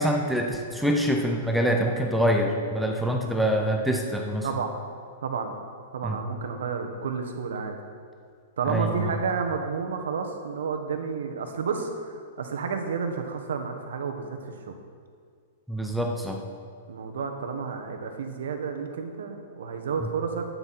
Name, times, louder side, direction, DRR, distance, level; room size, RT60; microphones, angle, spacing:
voice 1, 0.0-4.5 6.0-6.2 8.7-9.1 15.7-16.4 20.0-20.1, equal, ahead, 2 dB, 0.7 m, -25 dB
voice 2, 4.4-4.8 5.2-5.6 5.9-7.7 8.6-14.4 14.7-14.8 16.9-20.5, right 5 dB, 85° right, 5 dB, 1.4 m, -31 dB
11.5 x 9.7 x 4.4 m, 2.1 s
hypercardioid pair, 160°, 0 cm